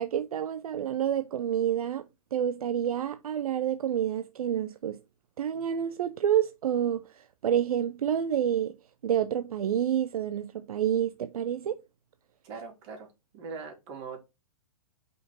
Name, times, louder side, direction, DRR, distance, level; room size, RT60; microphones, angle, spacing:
voice 1, 0.0-5.0 5.4-8.8 9.0-11.8, right 9 dB, 75° right, 0.7 m, -28 dB
voice 2, 12.4-13.1 13.3-14.2, right 5 dB, 45° right, 3.4 m, -41 dB
5.6 x 4.3 x 6.1 m
hypercardioid pair, 130°, 19 cm